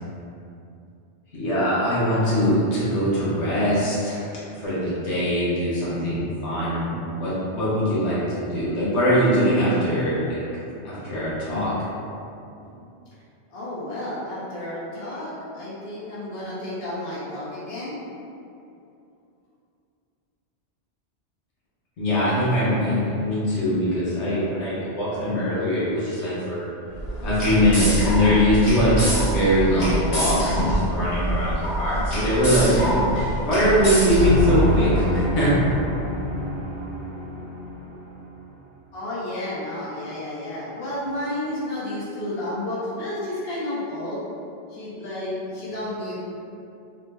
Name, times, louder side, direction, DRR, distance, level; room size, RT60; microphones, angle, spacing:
voice 1, 1.3-4.3 4.6-10.4 10.8-11.7 22.0-26.6 27.2-32.7 33.4-35.5, equal, 90° left, -9 dB, 1.2 m, -22 dB
voice 2, 13.5-18.0 38.9-44.2 44.7-46.2, left 1 dB, 65° left, -9 dB, 1.1 m, -31 dB
sound 1, 26.9-35.1, right 1 dB, 40° left, 0.9 m, -25 dB
sound 2, 34.1-38.2, left 2 dB, 85° right, 1.0 m, -25 dB
3.2 x 2.0 x 3.3 m, 2.6 s
omnidirectional pair, 1.1 m